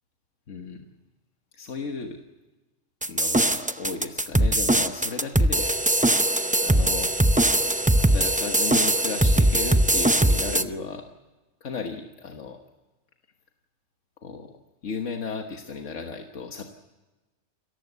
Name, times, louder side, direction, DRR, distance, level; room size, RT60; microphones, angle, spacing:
voice 1, 0.5-0.9 1.5-2.2 3.1-5.7 6.6-7.1 7.9-11.0 11.6-12.6 14.2-14.5 14.8-16.7, left 4 dB, 90° left, 4 dB, 1.7 m, -34 dB
sound 1, 3.0-10.6, right 1 dB, 10° right, 0.5 m, -21 dB
28.0 x 15.0 x 8.1 m, 1.1 s
omnidirectional pair, 1.2 m